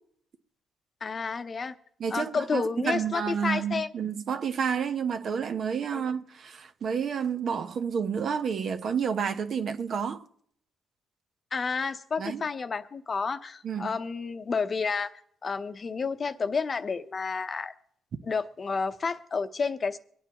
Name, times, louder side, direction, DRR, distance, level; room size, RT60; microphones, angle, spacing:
voice 1, 1.0-1.7 2.1-3.9 5.9-6.0 11.5-15.1 15.4-17.7 18.2-20.0, left 5 dB, 40° left, 0.8 m, -30 dB
voice 2, 2.0-10.2 12.2-12.4 13.6-13.9, right 7 dB, 55° right, 1.0 m, -30 dB
24.0 x 9.1 x 3.0 m
cardioid pair, 90°, 0 cm